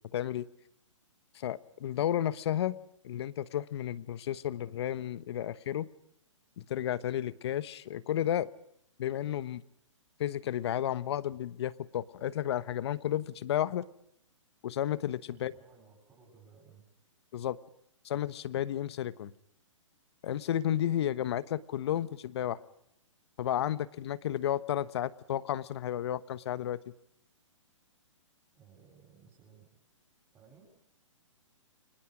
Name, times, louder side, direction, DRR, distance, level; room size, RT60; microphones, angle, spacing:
voice 1, 0.1-0.5 1.3-2.7 3.0-5.9 6.6-8.5 9.0-9.6 10.2-13.8 14.6-15.5 17.3-17.6 18.0-19.3 20.2-22.6 23.4-26.8, left 11 dB, 55° left, 16 dB, 1.2 m, -32 dB
voice 2, 15.3-16.9 28.5-29.8 30.3-30.7, right 6 dB, 15° right, -4 dB, 8.0 m, -59 dB
29.5 x 25.0 x 5.1 m, 0.72 s
hypercardioid pair, 130°, 17 cm